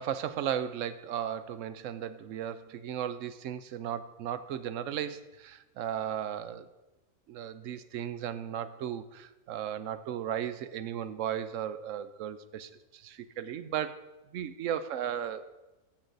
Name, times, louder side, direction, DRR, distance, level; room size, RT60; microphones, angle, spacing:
voice 1, 0.0-6.7 7.3-14.0 14.3-15.4, right 9 dB, 85° right, 13 dB, 1.0 m, -35 dB
14.5 x 6.2 x 3.9 m, 1.1 s
omnidirectional pair, 1.3 m